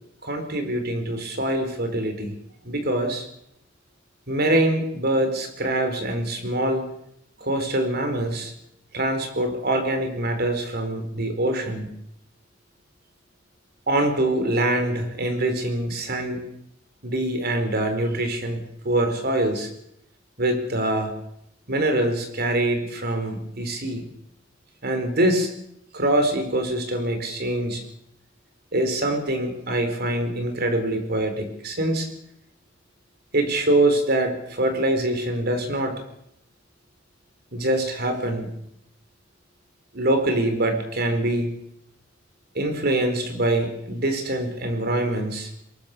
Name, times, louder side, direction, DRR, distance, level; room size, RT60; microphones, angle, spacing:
voice 1, 0.2-2.3 2.6-3.3 4.3-6.9 7.4-8.5 8.9-11.9 13.9-16.5 17.0-19.7 20.4-21.2 21.7-24.0 24.8-25.5 25.9-27.8 28.7-32.1 33.3-36.0 37.5-38.5 39.9-41.5 42.5-45.5, right 1 dB, 55° right, 7 dB, 4.4 m, -24 dB
22.5 x 21.0 x 6.8 m, 0.77 s
head